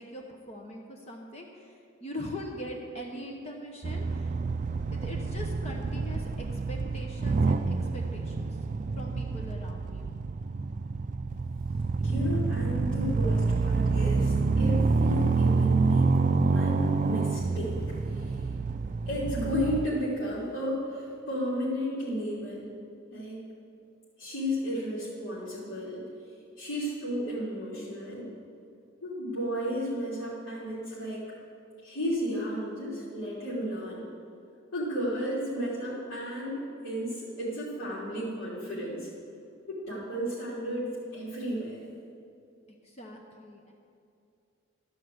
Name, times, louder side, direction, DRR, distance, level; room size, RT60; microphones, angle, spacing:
voice 1, 0.0-4.3 4.9-8.6 9.0-10.1 42.8-43.7, left 1 dB, 30° left, 1 dB, 0.9 m, -42 dB
sound 1, 3.8-19.9, right 4 dB, 35° right, 0.3 m, -27 dB
voice 2, 11.7-18.5 19.0-22.6 23.1-23.4 24.2-26.1 26.6-28.3 29.0-31.2 31.8-34.0 34.7-39.1 39.7-41.8, equal, 90° left, -10 dB, 3.3 m, -33 dB
13.0 x 5.6 x 7.8 m, 2.5 s
head